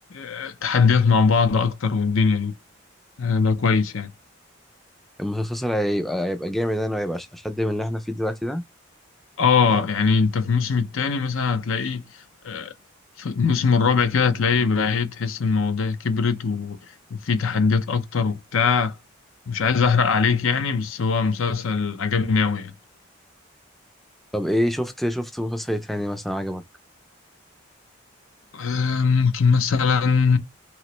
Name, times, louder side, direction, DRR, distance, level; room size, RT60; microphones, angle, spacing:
voice 1, 0.1-2.5 3.2-4.1 9.4-12.7 13.2-16.8 17.1-19.0 19.5-22.7 28.5-30.4, left 5 dB, 85° left, 0.6 m, -21 dB
voice 2, 5.2-8.6 24.3-26.6, equal, ahead, 0.3 m, -26 dB
3.1 x 2.9 x 2.9 m
head